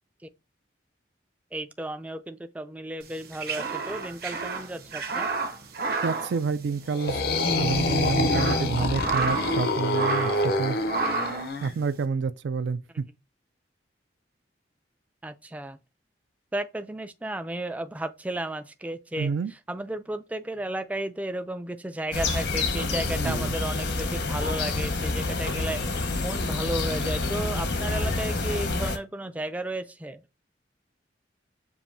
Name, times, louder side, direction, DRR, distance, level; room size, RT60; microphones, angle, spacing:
voice 1, 1.5-5.3 15.2-15.8 16.5-19.3 19.7-25.8 26.2-30.2, right 1 dB, 10° right, 0.3 m, -33 dB
sound 1, 3.1-7.2 7.4-7.6 8.1-9.6 9.9-10.5 10.9-11.5, right 4 dB, 55° right, 0.8 m, -30 dB
voice 2, 5.8-7.2 7.5-10.8 11.6-13.0 19.2-19.5 23.2-23.5, right 5 dB, 80° right, 0.4 m, -29 dB
sound 2, 6.9-11.7, left 2 dB, 55° left, 0.6 m, -26 dB
sound 3, 22.1-29.0, left 3 dB, 75° left, 0.9 m, -28 dB
7.0 x 2.6 x 2.6 m
head